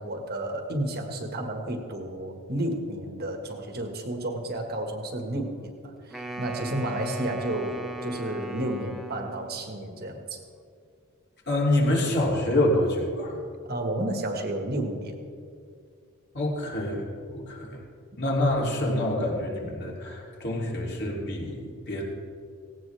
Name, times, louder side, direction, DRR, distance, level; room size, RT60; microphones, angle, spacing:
voice 1, 0.0-10.4 13.7-15.2, right 1 dB, 45° right, 4 dB, 1.7 m, -31 dB
Wind instrument woodwind instrument, 6.1-9.6, right 2 dB, ahead, 1.0 m, -38 dB
voice 2, 11.5-13.4 16.3-17.8 18.2-22.0, left 1 dB, 50° left, -2 dB, 3.1 m, -26 dB
17.5 x 17.5 x 3.5 m, 2.3 s
head